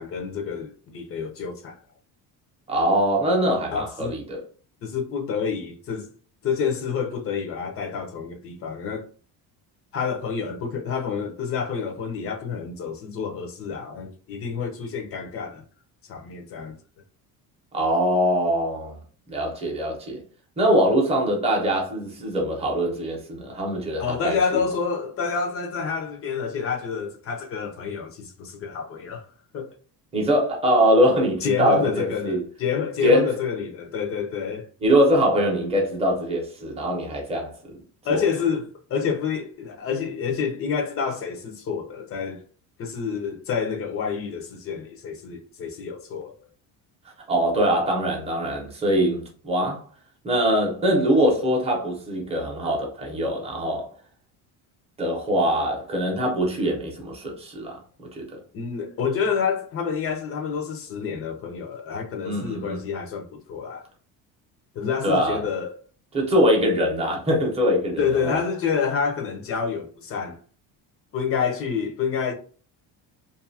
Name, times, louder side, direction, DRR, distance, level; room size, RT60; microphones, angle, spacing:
voice 1, 0.0-1.8 3.7-4.2 4.8-6.1 6.4-9.1 9.9-15.6 16.1-16.7 24.0-29.3 29.5-29.7 31.4-34.7 38.0-42.4 42.8-46.3 58.5-63.9 64.7-65.7 68.0-70.4 71.1-72.3, left 6 dB, 35° left, 0.5 m, -28 dB
voice 2, 2.7-4.4 17.7-19.0 19.3-20.2 20.6-24.4 30.1-32.4 33.0-33.4 34.8-37.8 38.1-38.2 47.3-49.8 50.2-53.9 55.0-58.4 62.2-62.8 65.0-65.4 66.1-68.4, equal, 15° right, 0.7 m, -23 dB
2.6 x 2.4 x 2.6 m
cardioid pair, 165°, 38 cm